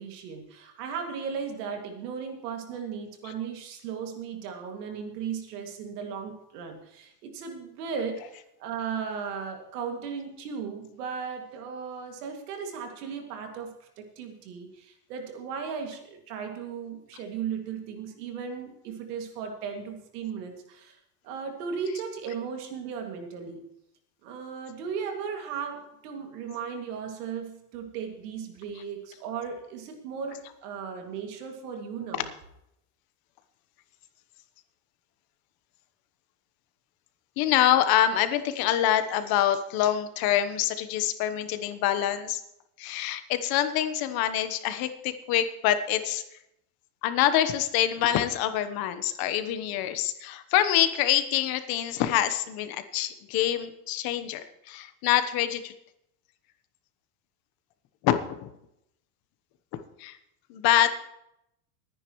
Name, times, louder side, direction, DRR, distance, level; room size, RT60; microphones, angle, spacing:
voice 1, 0.0-21.0 21.2-23.7 24.2-32.3, right 6 dB, 85° right, 3 dB, 2.5 m, -36 dB
voice 2, 37.4-42.4 42.8-46.2 47.0-55.7 58.0-58.5 59.7-60.2 60.5-61.0, left 11 dB, 50° left, 10 dB, 1.2 m, -26 dB
20.5 x 9.8 x 3.1 m, 0.82 s
supercardioid pair, 140°, 45 cm